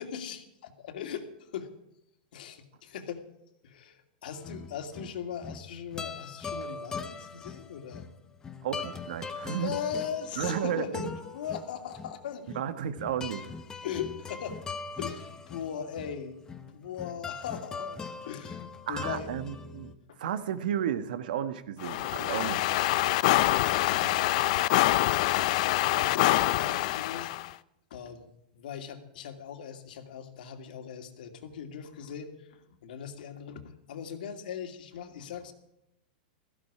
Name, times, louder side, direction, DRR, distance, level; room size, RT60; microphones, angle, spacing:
voice 1, 0.0-1.7 2.3-3.2 3.6-8.1 9.2-12.6 13.8-14.6 15.0-16.4 16.7-19.3 20.1-20.2 25.9-27.5 27.9-35.5, left 8 dB, 70° left, 6 dB, 2.5 m, -39 dB
sound 1, 4.3-19.9, left 5 dB, 15° left, 1.0 m, -41 dB
voice 2, 8.6-9.7 10.4-11.1 12.5-13.5 18.9-19.9 20.2-23.0 23.9-24.2, right 10 dB, 70° right, 11 dB, 1.4 m, -33 dB
sound 2, 21.8-27.5, left 17 dB, 50° left, 0.6 m, -25 dB
17.0 x 14.5 x 4.9 m, 0.84 s
supercardioid pair, 155°, 5 cm